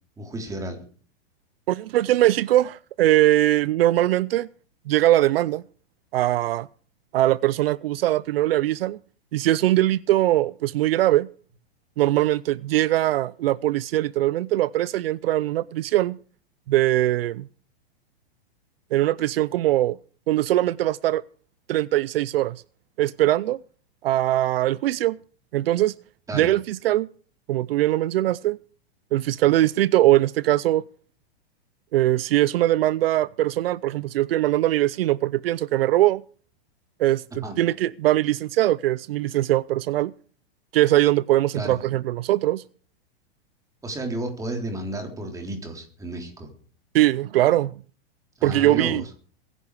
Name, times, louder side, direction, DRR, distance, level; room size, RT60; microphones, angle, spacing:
voice 1, 0.2-0.8 26.3-26.5 37.4-37.6 41.5-41.8 43.8-46.5 48.4-49.1, right 1 dB, 10° right, 3.6 m, -32 dB
voice 2, 1.7-4.5 4.9-5.6 6.1-6.7 7.1-9.0 9.3-11.3 12.0-16.2 16.7-17.5 18.9-20.0 20.3-21.2 21.7-22.6 23.0-23.6 24.0-25.2 25.5-25.9 26.3-27.1 27.5-28.6 29.1-30.8 31.9-36.2 37.0-40.1 40.7-42.6 46.9-47.7 48.4-49.0, right 14 dB, 70° right, 0.6 m, -21 dB
21.5 x 11.0 x 4.8 m
hypercardioid pair, 145°, 30 cm